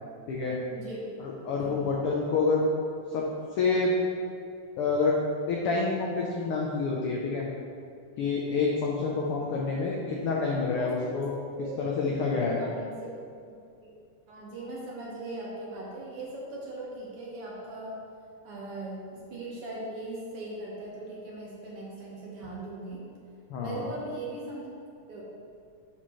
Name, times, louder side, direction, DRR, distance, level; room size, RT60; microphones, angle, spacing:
voice 1, 0.7-1.1 1.5-1.9 10.7-11.1 11.6-11.7 12.4-13.1 13.8-13.9 14.3-18.0 18.4-19.0 19.3-23.0 23.6-24.7 25.1-25.2, right 2 dB, 60° right, -5 dB, 1.9 m, -39 dB
voice 2, 1.2-2.6 3.1-3.2 3.5-3.9 4.8-5.2 5.5-7.5 8.2-11.4 11.8-12.6 23.5-23.9, left 4 dB, 85° left, -2 dB, 1.2 m, -28 dB
11.0 x 4.4 x 3.1 m, 2.4 s
omnidirectional pair, 3.4 m